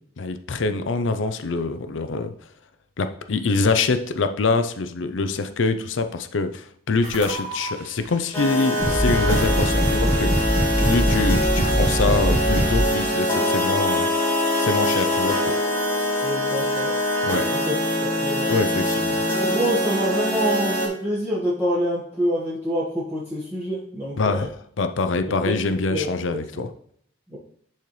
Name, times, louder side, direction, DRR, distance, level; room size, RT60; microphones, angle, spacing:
voice 1, 0.2-2.3 3.0-14.1 14.6-15.5 17.2-17.5 18.5-19.6 24.1-26.7, left 3 dB, 85° left, 9 dB, 0.6 m, -25 dB
sound 1, 7.0-7.7 8.4-8.5 8.8-13.0, equal, 45° right, 2.0 m, -22 dB
sound 2, 8.3-20.9, left 1 dB, 15° left, 2.0 m, -23 dB
voice 2, 16.2-16.9 17.6-18.5 19.3-24.5 25.4-25.6 25.9-26.7 27.3-27.4, equal, 10° right, -9 dB, 1.5 m, -26 dB
10.5 x 4.3 x 3.2 m, 0.65 s
head